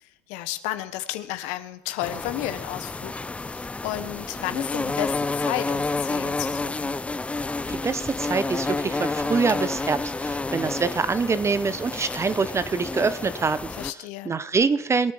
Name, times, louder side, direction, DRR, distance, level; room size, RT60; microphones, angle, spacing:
voice 1, 0.0-6.9 13.7-14.4, left 14 dB, 65° left, 11 dB, 1.3 m, -33 dB
sound 1, 2.0-13.9, left 3 dB, 10° left, 0.4 m, -30 dB
voice 2, 7.7-13.7 14.2-15.1, right 4 dB, 20° right, 15 dB, 0.8 m, -25 dB
21.5 x 9.4 x 4.9 m, 0.82 s
supercardioid pair, 95°, 13 cm